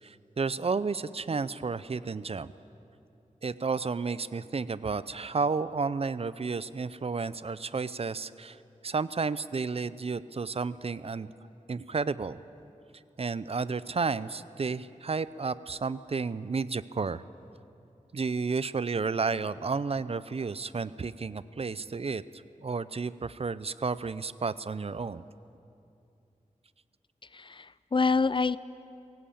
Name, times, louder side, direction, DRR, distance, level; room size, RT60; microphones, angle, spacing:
voice 1, 0.0-2.5 3.4-8.6 8.8-11.3 11.7-12.4 13.2-17.2 18.1-22.2 22.6-25.2, right 4 dB, 50° right, 16 dB, 0.6 m, -32 dB
voice 2, 27.3-28.6, left 4 dB, 40° left, 17 dB, 0.5 m, -26 dB
22.0 x 17.0 x 8.7 m, 2.7 s
wide cardioid pair, 95°, 14 cm